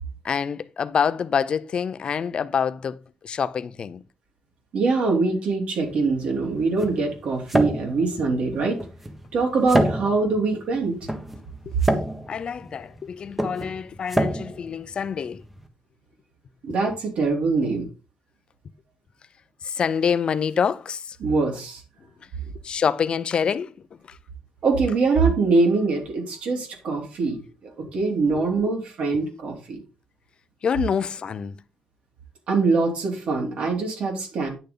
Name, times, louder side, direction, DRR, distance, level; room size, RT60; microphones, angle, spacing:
voice 1, 0.2-3.0 3.2-4.0 11.7-11.8 12.3-15.4 19.6-21.2 22.6-23.7 24.1-24.2 28.3-28.4 30.6-31.5, left 7 dB, 45° left, 0.7 m, -26 dB
voice 2, 4.7-8.8 9.3-11.0 16.6-17.8 21.2-21.8 24.6-27.4 27.9-29.8 32.5-34.5, right 3 dB, 65° right, 3.9 m, -23 dB
sound 1, 5.8-15.7, right 1 dB, 10° right, 1.5 m, -28 dB
10.0 x 6.8 x 4.0 m
cardioid pair, 135°, 2 cm